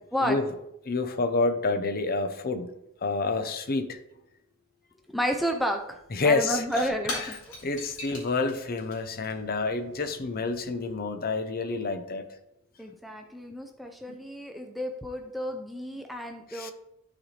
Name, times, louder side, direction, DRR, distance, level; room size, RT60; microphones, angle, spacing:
voice 1, 0.8-2.7 3.0-4.0 6.1-6.6 7.6-12.2 14.1-14.2 16.5-16.7, left 3 dB, 40° left, 8 dB, 0.6 m, -28 dB
voice 2, 5.1-6.0 6.2-7.3 12.8-16.7, equal, ahead, 3 dB, 0.4 m, -31 dB
Shatter / Crushing, 6.0-10.9, left 2 dB, 65° left, 3.0 m, -41 dB
11.5 x 4.1 x 3.2 m, 0.83 s
head